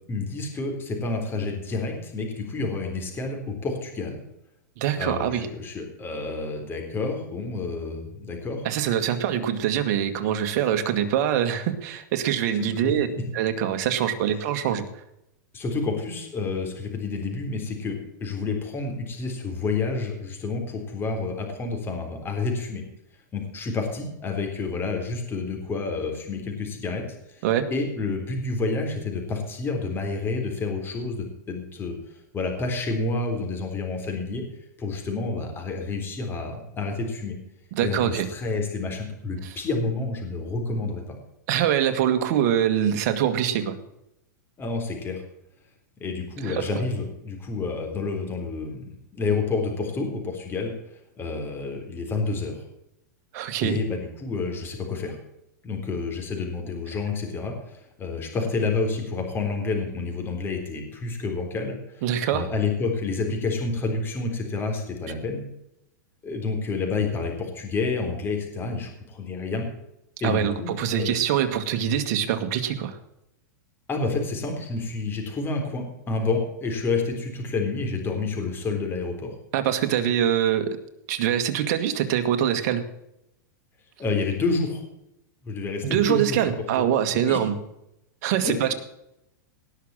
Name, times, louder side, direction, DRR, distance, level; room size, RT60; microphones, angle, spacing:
voice 1, 0.1-4.2 5.0-8.7 12.6-12.9 15.5-22.8 23.3-27.0 27.3-27.5 27.7-31.9 32.3-34.4 34.8-37.4 37.8-41.2 44.6-45.2 46.0-50.7 51.2-52.6 53.6-55.2 55.6-62.0 62.3-65.4 66.2-69.7 70.2-71.3 73.9-79.3 84.0-84.8 85.4-86.4 86.8-86.9 87.1-87.4 88.4-88.7, left 3 dB, 20° left, 3 dB, 3.7 m, -29 dB
voice 2, 4.8-5.5 8.6-13.1 13.3-14.9 27.4-27.7 37.7-38.3 41.5-43.8 46.4-46.7 53.3-53.8 62.0-62.5 70.2-73.0 79.5-80.8 81.1-82.8 85.8-87.6 88.2-88.7, right 10 dB, 55° right, 8 dB, 1.8 m, -24 dB
18.5 x 6.6 x 7.5 m, 0.85 s
hypercardioid pair, 130°, 10 cm